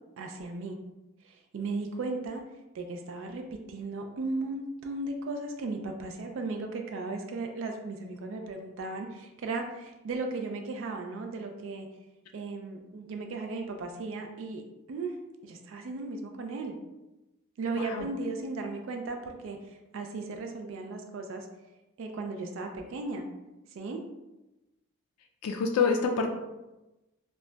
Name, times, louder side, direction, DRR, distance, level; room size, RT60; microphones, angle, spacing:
voice 1, 0.2-0.8 1.2-2.4 2.7-11.9 12.3-14.6 14.9-15.2 15.4-16.7 17.6-21.5 22.0-23.3 23.7-24.0, right 3 dB, 60° right, 3 dB, 0.3 m, -36 dB
voice 2, 17.8-18.1 25.4-26.3, left 5 dB, 85° left, 2 dB, 0.3 m, -27 dB
2.1 x 2.1 x 3.7 m, 1.0 s
head